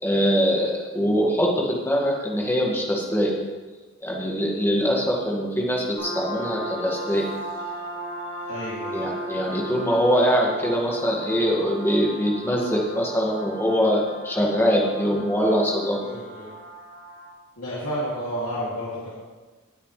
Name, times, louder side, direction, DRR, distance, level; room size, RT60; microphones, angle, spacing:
voice 1, 0.0-3.3 4.0-7.3 8.9-16.0, equal, 10° left, -2 dB, 1.9 m, -23 dB
sound 1, 6.0-17.3, right 1 dB, 80° right, 2.9 m, -36 dB
voice 2, 8.5-9.1 16.0-16.5 17.6-19.1, equal, 75° left, -9 dB, 2.6 m, -31 dB
18.5 x 7.7 x 3.3 m, 1.3 s
head